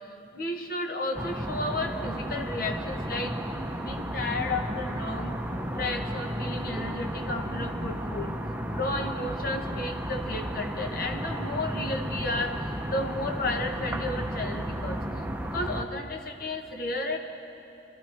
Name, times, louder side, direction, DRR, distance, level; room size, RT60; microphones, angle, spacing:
voice 1, 0.3-3.3 3.8-5.3 5.8-8.3 8.7-12.5 12.9-15.0 15.5-17.2, left 2 dB, 55° left, 3 dB, 1.2 m, -32 dB
sound 1, 1.1-15.8, equal, 10° right, 0.7 m, -33 dB
24.5 x 13.5 x 3.4 m, 2.9 s
head